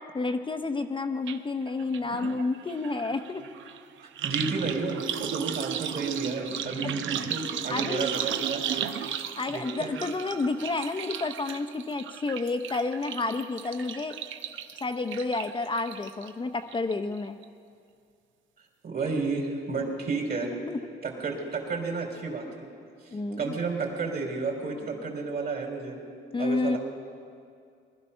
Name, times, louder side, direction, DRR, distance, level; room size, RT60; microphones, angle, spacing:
voice 1, 0.1-3.4 6.8-6.9 7.7-8.0 9.4-14.2 14.8-17.4 20.7-20.8 23.1-23.6 26.3-26.8, left 3 dB, 25° left, 6 dB, 0.7 m, -30 dB
sound 1, 1.3-1.4 1.7-16.3 16.7-17.2 17.4-17.5, right 9 dB, 75° right, 0.8 m, -35 dB
voice 2, 4.2-8.9 9.5-10.0 18.8-20.5 21.0-22.7 23.4-26.0 26.4-26.8, right 4 dB, 50° right, 1 dB, 3.6 m, -31 dB
20.5 x 12.5 x 5.5 m, 2.3 s
cardioid pair, 90°, 20 cm